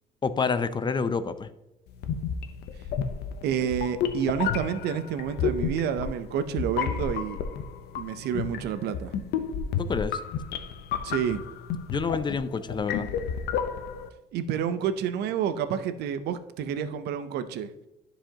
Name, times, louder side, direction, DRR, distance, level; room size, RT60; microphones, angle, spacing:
voice 1, 0.2-1.5 9.8-10.2 11.9-13.1, left 5 dB, 25° left, 13 dB, 0.5 m, -28 dB
sound 1, 2.0-14.1, left 7 dB, 75° left, 0.8 m, -31 dB
voice 2, 3.4-7.4 7.9-9.1 11.0-11.4 14.3-17.7, right 8 dB, 75° right, 11 dB, 0.7 m, -29 dB
12.5 x 5.0 x 2.9 m, 0.91 s
cardioid pair, 110°, 17 cm